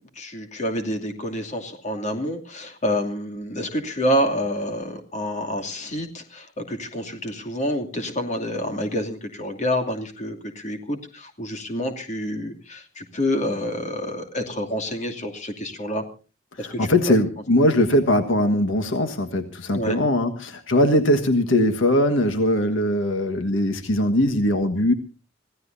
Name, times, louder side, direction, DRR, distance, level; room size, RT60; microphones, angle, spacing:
voice 1, 0.2-16.0 16.6-16.9 19.7-20.0, equal, 35° left, 4 dB, 2.7 m, -28 dB
voice 2, 16.6-24.9, left 1 dB, 70° left, 7 dB, 1.5 m, -20 dB
26.0 x 16.0 x 2.7 m, 0.36 s
head